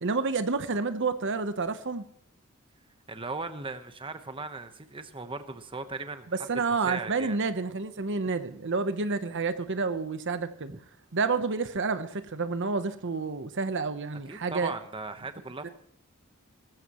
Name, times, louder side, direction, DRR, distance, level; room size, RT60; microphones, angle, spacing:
voice 1, 0.0-2.0 6.5-10.7 11.1-14.7 15.6-15.7, right 4 dB, 55° right, 10 dB, 0.9 m, -29 dB
voice 2, 3.1-7.4 10.7-10.8 14.3-15.7, right 3 dB, 25° right, 9 dB, 1.0 m, -38 dB
19.5 x 15.0 x 3.1 m, 0.66 s
head